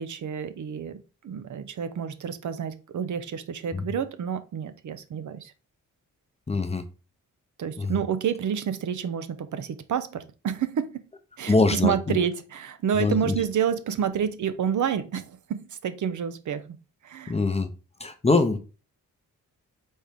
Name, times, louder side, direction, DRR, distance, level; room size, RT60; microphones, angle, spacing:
voice 1, 0.0-5.5 7.6-11.0 11.4-16.8 17.0-17.4, right 8 dB, 65° right, 0.6 m, -29 dB
voice 2, 6.5-6.8 7.8-7.9 11.5-12.2 13.0-13.4 17.3-17.7 18.0-18.6, left 3 dB, 20° left, 0.6 m, -23 dB
4.2 x 3.6 x 3.5 m
cardioid pair, 90°, 33 cm